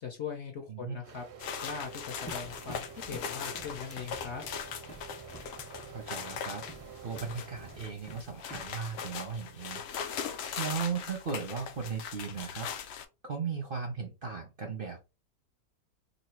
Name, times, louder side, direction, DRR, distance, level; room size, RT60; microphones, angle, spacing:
voice 1, 0.0-1.2 1.6-4.4, left 6 dB, 55° left, 3 dB, 0.9 m, -40 dB
sound 1, 1.0-7.9, right 7 dB, 80° right, 1.2 m, -50 dB
sound 2, 1.4-13.0, left 7 dB, 85° left, 0.5 m, -40 dB
sound 3, 2.3-9.0, right 2 dB, 10° left, 0.4 m, -51 dB
voice 2, 5.9-6.6 7.0-13.0 13.2-15.0, right 5 dB, 50° right, 3 dB, 0.7 m, -37 dB
3.0 x 2.7 x 4.4 m, 0.28 s
omnidirectional pair, 1.7 m